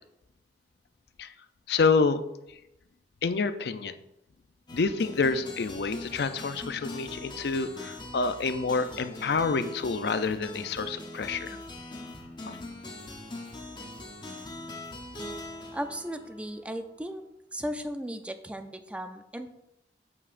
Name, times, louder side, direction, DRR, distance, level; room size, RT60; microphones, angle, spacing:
voice 1, 1.7-2.2 3.2-3.9 4.7-11.6 12.5-12.6, left 4 dB, 65° left, 11 dB, 0.4 m, -28 dB
sound 1, 4.7-17.0, left 1 dB, 25° left, 0.8 m, -42 dB
voice 2, 15.7-17.2 17.5-19.5, equal, 5° right, 8 dB, 0.4 m, -36 dB
8.4 x 7.1 x 2.5 m, 0.87 s
head